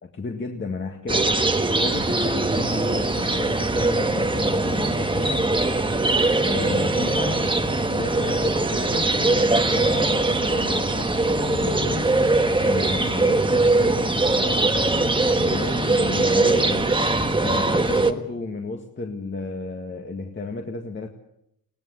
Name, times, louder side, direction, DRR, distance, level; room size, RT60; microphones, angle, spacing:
voice 1, 0.0-1.5 1.8-5.5 6.4-7.5 7.9-12.1 12.6-17.0 17.4-21.1, left 3 dB, 35° left, 3 dB, 1.9 m, -32 dB
sound 1, 1.1-18.1, right 2 dB, 15° right, 1.4 m, -21 dB
sound 2, 3.6-18.3, left 4 dB, 85° left, 2.8 m, -38 dB
21.5 x 17.0 x 8.2 m, 0.81 s
cardioid pair, 95°, 34 cm